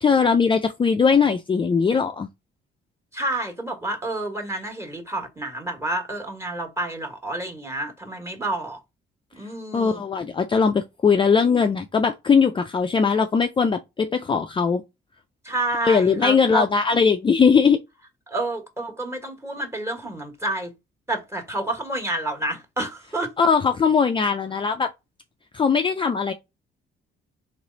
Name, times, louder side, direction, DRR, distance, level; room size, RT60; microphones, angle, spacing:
voice 1, 0.0-2.3 9.7-14.8 15.8-17.8 23.4-24.9 25.5-26.3, left 5 dB, 25° left, 0.4 m, -20 dB
voice 2, 3.1-8.8 9.4-10.0 15.4-16.7 18.3-20.7 21.1-23.3, right 2 dB, 15° right, 1.5 m, -29 dB
3.3 x 3.1 x 3.9 m
cardioid pair, 90°, 20 cm